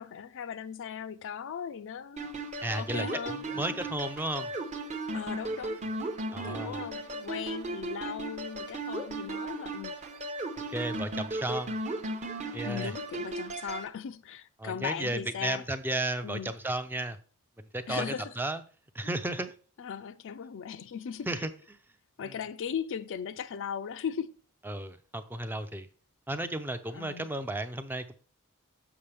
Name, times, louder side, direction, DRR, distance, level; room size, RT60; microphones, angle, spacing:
voice 1, 0.0-2.3 2.8-3.7 5.1-5.8 6.3-10.0 12.6-15.6 16.2-16.5 17.9-18.3 19.8-21.3 22.2-24.3 26.9-27.3, left 7 dB, 60° left, 0.4 m, -38 dB
sound 1, 2.2-13.9, right 2 dB, 30° right, 0.8 m, -36 dB
voice 2, 2.6-4.5 6.3-6.8 10.7-11.8 12.5-12.9 14.6-17.2 17.6-18.6 18.9-19.5 21.3-21.5 22.2-22.4 24.6-25.9 26.3-28.1, right 1 dB, 10° right, 0.4 m, -34 dB
7.0 x 5.9 x 3.4 m
head